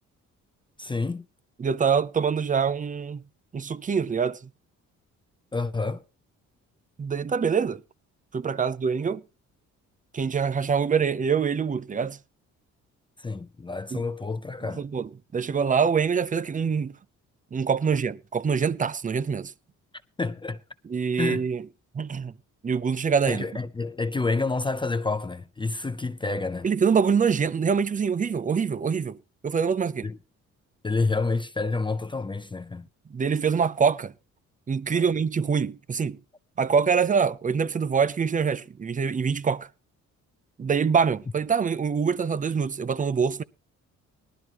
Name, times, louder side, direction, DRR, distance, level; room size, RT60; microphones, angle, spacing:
voice 1, 0.8-1.3 5.5-6.0 13.2-14.8 20.2-20.6 21.2-21.4 23.3-26.7 30.0-30.2 30.8-32.9 34.9-35.0, left 3 dB, 15° left, 0.6 m, -29 dB
voice 2, 1.6-3.2 3.5-4.4 7.0-7.8 8.3-9.2 10.1-12.2 13.9-14.0 14.6-16.9 17.5-19.5 20.8-21.6 21.9-22.3 22.6-23.5 26.6-29.2 29.4-30.1 33.1-34.1 34.7-36.2 36.6-39.7 40.6-43.4, right 6 dB, 25° right, 0.6 m, -25 dB
18.5 x 12.5 x 3.0 m
cardioid pair, 90°, 30 cm